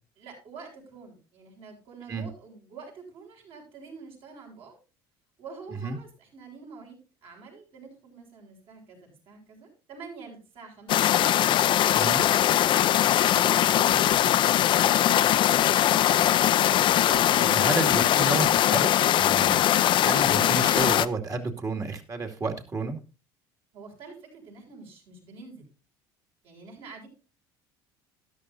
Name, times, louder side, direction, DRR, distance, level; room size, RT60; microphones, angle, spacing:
voice 1, 0.2-4.8 5.4-11.1 12.3-16.1 16.9-18.2 23.7-25.6 26.4-27.1, right 4 dB, 60° right, 0 dB, 6.9 m, -46 dB
sound 1, 10.9-21.1, left 12 dB, 50° left, 0.6 m, -21 dB
voice 2, 17.6-18.9 19.2-19.6 20.0-23.0, right 3 dB, 35° right, 4 dB, 2.4 m, -31 dB
13.0 x 11.5 x 2.7 m, 0.32 s
supercardioid pair, 90°, 11 cm